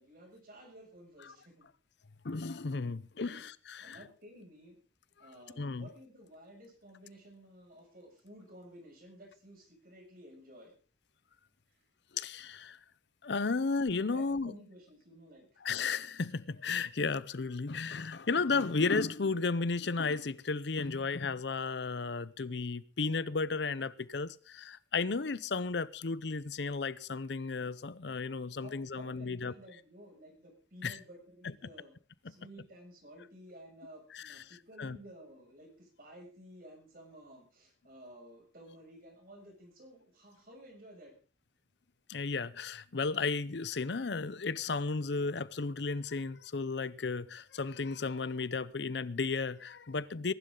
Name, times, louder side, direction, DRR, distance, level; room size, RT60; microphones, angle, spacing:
voice 1, 0.0-1.7 3.2-3.4 3.8-4.8 5.2-10.7 14.1-15.6 28.6-31.9 32.2-41.1, equal, 50° right, 6.8 m, -54 dB
voice 2, 2.2-4.0 5.6-5.9 12.1-12.8 13.2-14.5 15.6-29.5 30.8-31.0 31.4-31.5 32.2-32.3 34.1-34.4 34.8-35.0 42.1-50.3, left 4 dB, 70° left, 0.7 m, -34 dB
22.0 x 12.0 x 3.9 m
head